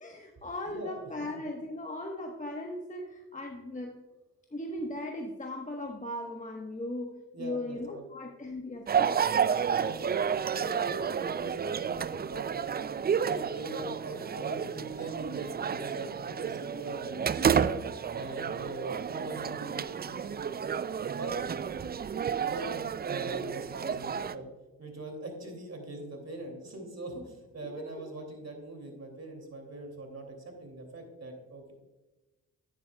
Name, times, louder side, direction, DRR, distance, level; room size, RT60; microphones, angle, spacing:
voice 1, 0.0-3.9 4.5-7.1 7.4-9.1 27.8-28.0, left 1 dB, 20° left, 1 dB, 1.3 m, -38 dB
voice 2, 0.6-1.3 7.3-8.1 9.8-12.8 13.2-17.6 18.1-20.5 21.1-21.3 22.4-22.8 23.0-24.5 24.8-31.7, right 2 dB, 45° right, 3 dB, 2.8 m, -42 dB
sound 1, 8.9-24.3, right 7 dB, 30° right, 0.4 m, -31 dB
9.8 x 9.0 x 2.3 m, 1.2 s
supercardioid pair, 40°, 35 cm